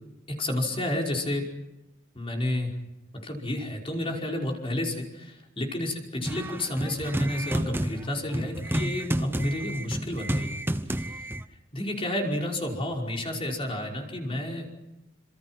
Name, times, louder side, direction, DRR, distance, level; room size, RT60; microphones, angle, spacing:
voice 1, 0.3-1.5 2.2-2.7 3.2-10.6 11.1-11.2 11.7-14.7, left 1 dB, 30° left, 0 dB, 5.2 m, -31 dB
sound 1, 6.2-11.4, right 1 dB, 10° right, 0.8 m, -30 dB
28.0 x 27.0 x 6.1 m, 0.94 s
head